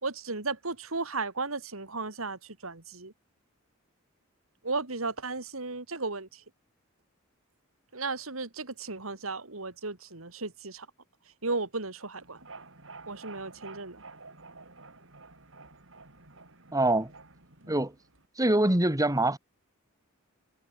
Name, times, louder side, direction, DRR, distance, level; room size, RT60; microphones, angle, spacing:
voice 1, 0.0-3.1 4.6-6.4 7.9-10.9 11.4-12.4 13.1-14.0, right 3 dB, 90° right, 3.1 m, -35 dB
sound 1, 12.2-18.3, right 3 dB, 65° right, 6.6 m, -50 dB
voice 2, 16.7-17.1 17.7-17.9 18.4-19.4, right 1 dB, 15° right, 2.8 m, -24 dB
head